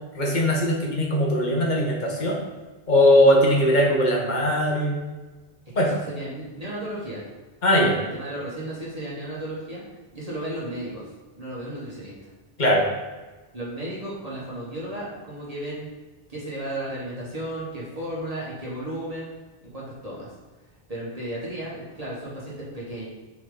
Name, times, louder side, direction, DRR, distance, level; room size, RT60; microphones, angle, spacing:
voice 1, 0.1-2.4 2.9-5.0 5.8-6.0 7.6-7.9 12.6-12.9, equal, 50° left, -2 dB, 1.3 m, -20 dB
voice 2, 5.7-7.2 7.8-9.8 10.1-11.1 11.3-12.1 13.5-15.9 16.3-19.3 19.6-20.3 20.9-23.1, right 1 dB, 40° right, -7 dB, 1.5 m, -34 dB
6.6 x 3.8 x 3.8 m, 1.2 s
omnidirectional pair, 1.0 m